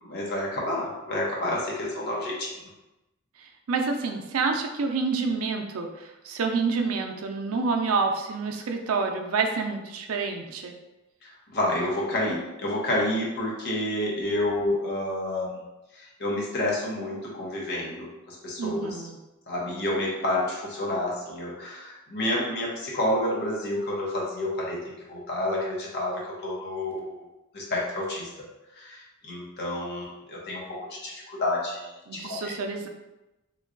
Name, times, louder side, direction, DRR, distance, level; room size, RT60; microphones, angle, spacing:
voice 1, 0.0-2.5 11.2-15.6 15.9-19.0 19.5-27.3 27.5-28.3 28.7-30.6 30.9-32.5, left 1 dB, 55° left, -4 dB, 0.9 m, -29 dB
voice 2, 3.4-10.7 18.6-19.2 32.1-32.9, right 4 dB, 80° right, 4 dB, 0.5 m, -28 dB
3.1 x 2.2 x 3.7 m, 1.0 s
head